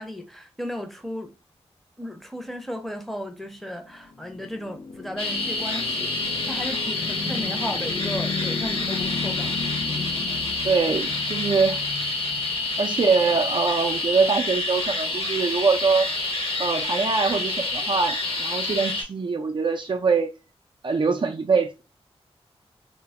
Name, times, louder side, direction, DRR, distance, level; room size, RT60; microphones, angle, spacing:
voice 1, 0.0-1.3 2.0-6.1 6.5-9.6 9.9-10.1, equal, ahead, 0.6 m, -35 dB
sound 1, 3.8-13.1, left 5 dB, 75° left, 0.5 m, -35 dB
sound 2, 5.2-19.0, left 2 dB, 55° left, 1.0 m, -28 dB
voice 2, 7.3-7.6 10.6-11.8 12.8-16.1 16.6-20.3 20.8-21.8, right 4 dB, 50° right, 0.4 m, -23 dB
2.1 x 2.0 x 3.5 m
cardioid pair, 70°, 11 cm